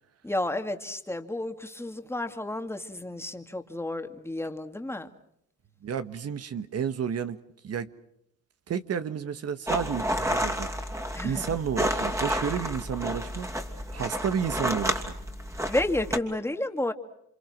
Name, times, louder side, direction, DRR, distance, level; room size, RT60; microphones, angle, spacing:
voice 1, 0.2-5.1 11.1-11.6 15.7-16.9, left 1 dB, 10° left, 2.3 m, -31 dB
voice 2, 5.8-7.4 7.6-7.9 8.7-10.7 11.2-13.5 13.9-15.1, right 7 dB, 55° right, 1.6 m, -31 dB
sound 1, 9.7-16.2, equal, 10° right, 2.8 m, -30 dB
29.5 x 26.0 x 6.1 m
cardioid pair, 90°, 30 cm